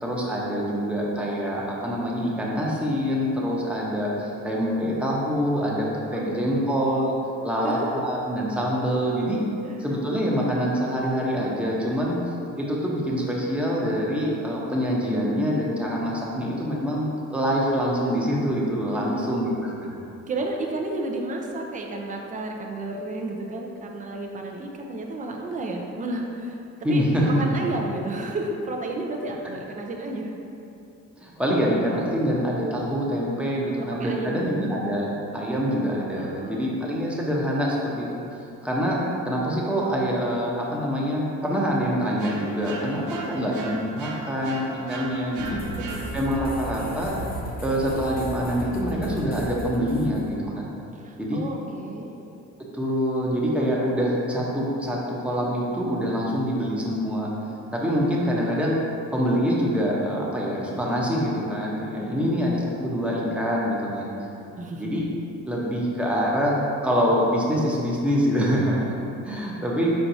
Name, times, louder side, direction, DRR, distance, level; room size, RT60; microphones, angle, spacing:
voice 1, 0.0-7.2 7.4-9.4 9.8-12.2 12.6-19.7 26.8-27.4 31.2-35.1 35.3-39.0 39.3-45.6 46.1-47.1 47.6-50.6 51.2-51.4 52.7-57.3 57.7-58.8 59.1-64.1 64.6-65.0 65.5-69.0 69.2-69.9, equal, 5° right, -5 dB, 0.8 m, -25 dB
voice 2, 6.1-6.9 7.6-8.1 9.6-9.9 18.9-19.4 20.3-30.3 31.5-31.7 33.6-34.5 36.1-36.8 45.8-46.2 50.9-52.1 62.0-62.4 64.6-64.9, right 2 dB, 25° right, 1 dB, 0.5 m, -32 dB
sound 1, 42.2-46.5, right 3 dB, 80° right, 0.8 m, -38 dB
sound 2, 45.4-50.4, equal, 30° left, 0.5 m, -35 dB
4.5 x 4.4 x 2.7 m, 2.7 s
cardioid pair, 90°, 30 cm